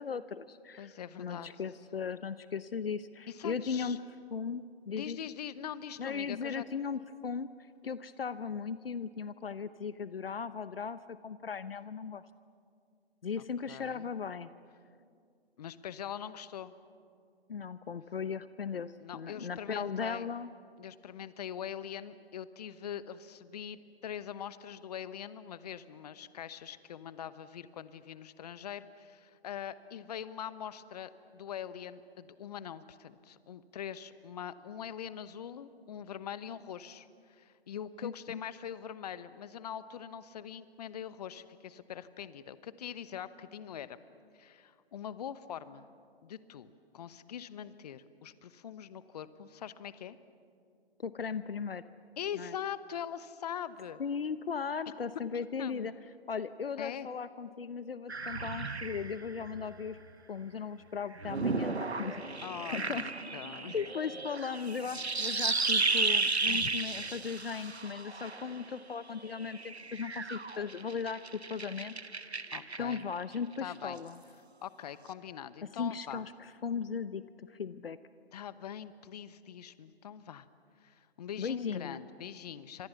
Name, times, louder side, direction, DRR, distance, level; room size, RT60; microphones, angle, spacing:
voice 1, 0.0-0.9 1.2-4.0 4.3-5.2 6.0-7.5 7.8-12.2 13.2-14.5 17.5-20.5 38.0-38.4 51.0-51.8 52.3-52.5 54.0-55.9 56.3-60.0 60.3-62.2 62.7-63.1 63.7-72.4 72.8-74.2 75.8-78.0 81.4-82.0, left 6 dB, 65° left, 14 dB, 0.9 m, -37 dB
voice 2, 0.8-1.5 3.3-4.0 4.9-6.6 13.4-14.1 15.6-16.7 19.0-20.3 20.8-44.0 44.3-45.9 46.2-50.2 52.2-54.0 54.9-55.0 55.6-55.9 56.8-57.1 62.4-63.7 66.5-66.7 72.5-73.0 73.6-74.0 74.6-76.2 78.3-80.5 80.8-82.9, left 9 dB, 40° left, 15 dB, 1.0 m, -43 dB
sound 1, 58.1-59.9 61.2-68.7 69.3-73.1, right 3 dB, 85° right, 1.3 m, -34 dB
29.0 x 26.0 x 7.1 m, 2.3 s
figure-of-eight pair, 130°, 32 cm